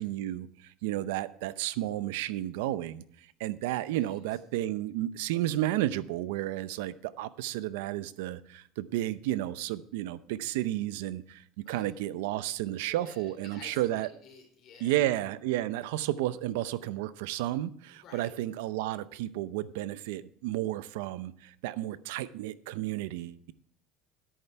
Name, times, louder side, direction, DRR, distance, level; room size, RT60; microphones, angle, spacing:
voice 1, 0.0-3.0 3.4-14.1 14.8-23.5, right 14 dB, 90° right, 0.6 m, -32 dB
voice 2, 12.9-15.0 18.0-18.3, left 5 dB, 35° left, 3.6 m, -52 dB
10.5 x 8.8 x 4.5 m
cardioid pair, 170°, 0 cm